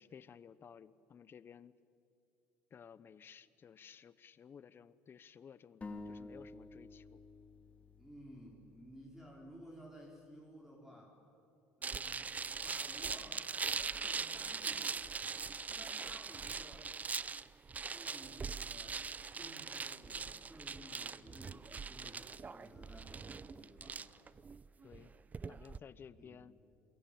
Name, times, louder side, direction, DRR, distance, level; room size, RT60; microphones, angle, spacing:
voice 1, 0.0-1.7 2.7-7.2 24.8-25.2 25.5-26.6, left 7 dB, 40° left, 17 dB, 1.0 m, -56 dB
sound 1, 5.8-9.4, left 2 dB, 20° left, 2.6 m, -51 dB
voice 2, 8.0-11.2 11.8-12.4 12.6-13.5 13.7-15.0 15.6-16.9 17.9-19.0 19.3-24.1 26.2-26.4, equal, 5° right, -1 dB, 4.8 m, -56 dB
sound 2, 11.8-25.8, right 5 dB, 25° right, 0.6 m, -41 dB
28.0 x 22.5 x 8.8 m, 2.6 s
supercardioid pair, 95°, 6 cm